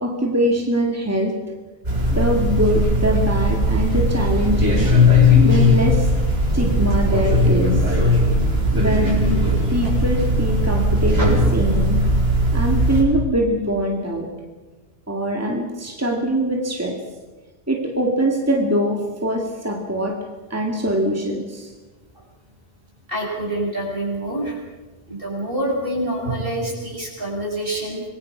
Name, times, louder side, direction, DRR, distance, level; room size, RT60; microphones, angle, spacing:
voice 1, 0.0-1.4 2.1-5.0 5.4-6.1 6.5-7.9 8.7-9.4 9.7-12.1 12.5-14.3 15.1-17.0 17.7-20.2 20.5-21.7, equal, 15° right, 1 dB, 2.3 m, -22 dB
sound 1, 1.8-13.0, left 1 dB, 85° right, 7.8 m, -18 dB
voice 2, 23.1-24.6 25.1-28.0, right 1 dB, 60° right, -1 dB, 7.2 m, -26 dB
26.5 x 21.5 x 6.1 m, 1.3 s
omnidirectional pair, 1.0 m